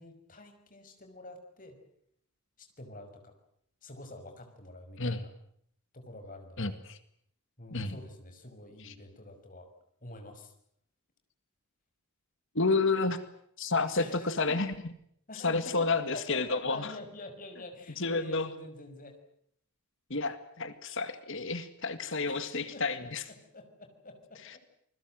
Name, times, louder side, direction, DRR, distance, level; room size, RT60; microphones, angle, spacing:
voice 1, 0.0-1.8 2.6-3.4 3.8-5.3 5.9-6.8 7.6-9.7 10.0-10.5 14.0-14.6 15.3-19.2 22.3-22.8 23.3-24.6, left 2 dB, 35° left, 5 dB, 5.8 m, -47 dB
voice 2, 12.6-13.2 13.6-14.7 15.4-16.9 18.0-18.5 20.1-23.2, left 3 dB, 60° left, 11 dB, 2.0 m, -30 dB
28.5 x 21.5 x 7.8 m, 0.68 s
head